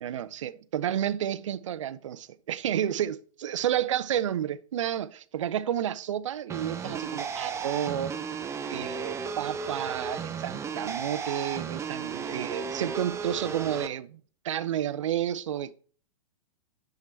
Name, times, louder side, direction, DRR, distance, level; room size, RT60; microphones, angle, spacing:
voice 1, 0.0-8.1 8.7-14.2 14.4-15.7, right 10 dB, 60° right, 0.6 m, -31 dB
sound 1, 6.5-13.9, right 6 dB, 15° right, 0.7 m, -34 dB
10.5 x 5.2 x 4.5 m
figure-of-eight pair, 110°, 18 cm